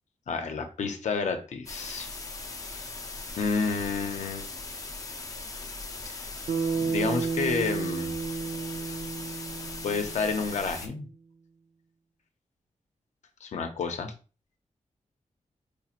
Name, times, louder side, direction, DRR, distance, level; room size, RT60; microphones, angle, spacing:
voice 1, 0.3-2.1 2.7-2.8 3.4-4.5 6.1-6.2 6.8-8.2 9.8-11.1 13.4-14.1, left 4 dB, 70° left, 6 dB, 0.6 m, -30 dB
sound 1, 1.7-10.9, left 3 dB, 30° left, 0.5 m, -39 dB
Bass guitar, 6.5-10.9, right 5 dB, 85° right, 0.6 m, -32 dB
4.7 x 2.9 x 2.4 m, 0.35 s
wide cardioid pair, 180°, 12 cm